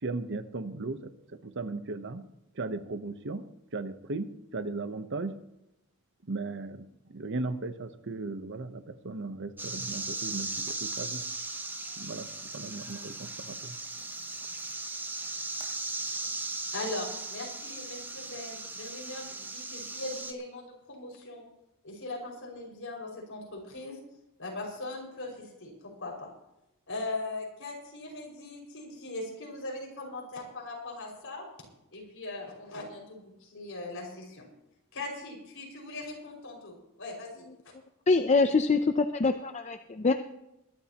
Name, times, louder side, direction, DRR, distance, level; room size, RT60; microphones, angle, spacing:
voice 1, 0.0-2.2 2.5-3.4 3.7-5.3 6.3-11.2 12.0-13.8, right 3 dB, 55° right, 10 dB, 0.9 m, -37 dB
sound 1, 9.6-20.3, right 2 dB, 10° right, 0.8 m, -37 dB
voice 2, 16.7-21.4 21.8-24.0 24.4-26.1 26.9-31.5 31.9-34.5 34.9-37.4, left 2 dB, 65° left, -1 dB, 5.7 m, -40 dB
voice 3, 38.1-40.1, left 3 dB, 30° left, 7 dB, 0.6 m, -24 dB
22.5 x 12.5 x 3.0 m, 0.89 s
head